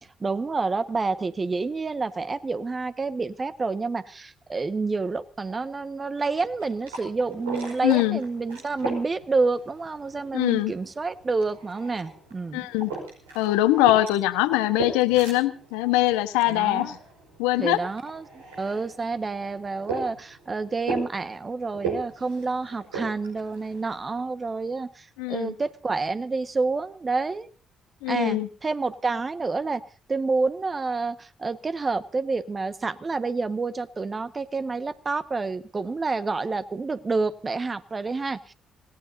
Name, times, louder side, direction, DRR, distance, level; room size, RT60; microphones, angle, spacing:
voice 1, 0.2-12.7 16.5-16.9 17.6-27.5 28.1-29.8 30.1-38.5, right 3 dB, 35° right, 11 dB, 1.5 m, -28 dB
sound 1, 6.4-24.2, right 4 dB, 85° right, 5.1 m, -39 dB
voice 2, 7.8-8.2 10.3-10.7 12.5-12.9 13.3-17.0 17.4-17.8 25.2-25.5 28.0-28.5, left 16 dB, 75° left, 11 dB, 1.3 m, -22 dB
26.5 x 18.0 x 2.8 m, 0.38 s
hypercardioid pair, 45°, 0 cm